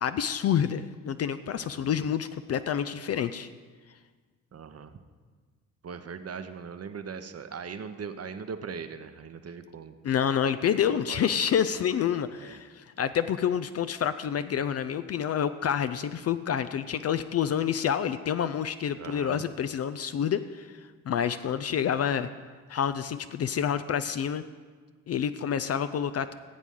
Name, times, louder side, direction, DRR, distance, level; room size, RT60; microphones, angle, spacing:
voice 1, 0.0-3.5 10.0-20.7 21.1-22.3 22.7-24.4 25.1-26.3, left 8 dB, 40° left, 11 dB, 0.4 m, -28 dB
voice 2, 1.5-1.9 4.5-5.0 5.8-10.0 10.8-11.4 12.3-12.6 19.0-19.4, right 6 dB, 35° right, 9 dB, 0.9 m, -40 dB
15.5 x 8.2 x 3.8 m, 1.5 s
hypercardioid pair, 45°, 41 cm